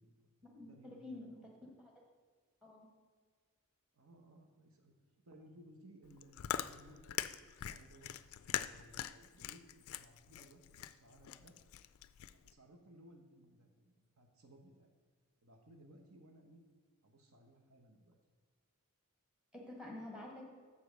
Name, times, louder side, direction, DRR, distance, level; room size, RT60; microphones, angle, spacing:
voice 1, 0.0-1.5 3.9-4.9 5.2-8.1 8.4-11.6 12.3-14.9 15.4-16.6 17.0-18.2, right 1 dB, 65° right, 3 dB, 1.0 m, -61 dB
voice 2, 0.5-1.4 1.8-1.9 2.6-2.9 19.5-20.4, left 1 dB, 5° right, -1 dB, 1.4 m, -49 dB
Chewing mastication, 6.0-12.5, left 11 dB, 70° left, 0.3 m, -43 dB
6.9 x 5.1 x 6.3 m, 1.5 s
head